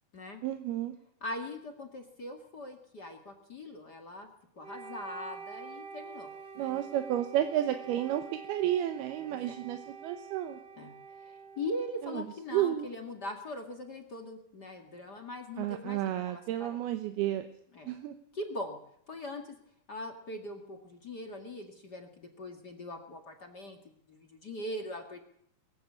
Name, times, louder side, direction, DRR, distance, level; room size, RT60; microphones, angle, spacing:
voice 1, 0.4-0.9 6.6-8.2 8.5-10.6 12.0-12.2 12.5-12.9 15.6-17.5 17.9-18.1, right 12 dB, 85° right, 7 dB, 3.0 m, -31 dB
voice 2, 1.2-4.3 4.5-6.8 9.2-9.6 10.8-10.9 11.2-16.8 17.7-17.9 18.3-18.8 19.1-19.5 19.9-25.2, left 1 dB, 35° left, 4 dB, 1.7 m, -41 dB
Wind instrument woodwind instrument, 4.6-12.7, right 6 dB, 55° right, 0.6 m, -47 dB
22.0 x 15.0 x 8.5 m, 0.70 s
omnidirectional pair, 4.5 m